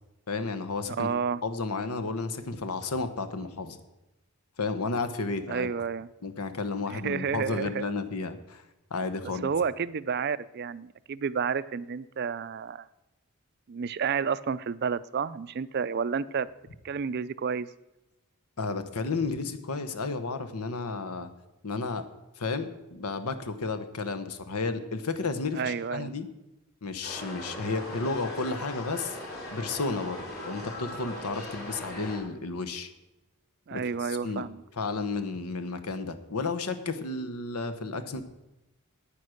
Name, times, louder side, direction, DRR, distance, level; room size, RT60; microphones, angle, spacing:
voice 1, 0.3-1.1 1.4-3.8 4.6-5.7 6.2-8.6 8.9-9.5 18.6-21.3 21.6-22.0 22.4-26.3 26.8-29.2 29.5-32.9 33.7-34.4 34.8-38.2, left 3 dB, 90° left, 10 dB, 1.0 m, -32 dB
voice 2, 1.0-1.4 5.5-6.1 6.9-7.9 9.4-12.9 13.7-16.5 16.8-17.7 25.5-26.2 33.7-34.6, right 6 dB, 45° right, 16 dB, 0.4 m, -30 dB
sound 1, 27.0-32.2, left 1 dB, 45° left, 4.1 m, -39 dB
9.5 x 9.0 x 6.4 m, 0.96 s
head